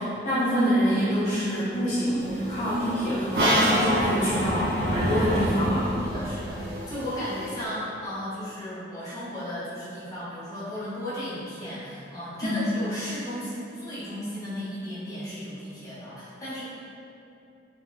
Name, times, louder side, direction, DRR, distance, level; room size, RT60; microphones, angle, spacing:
voice 1, 0.0-5.9 12.4-12.7, equal, 40° left, -12 dB, 0.5 m, -26 dB
sound 1, 2.2-7.7, equal, 55° right, 0.6 m, -27 dB
voice 2, 6.0-16.6, equal, 20° left, -12 dB, 0.9 m, -35 dB
4.0 x 2.7 x 2.2 m, 2.7 s
head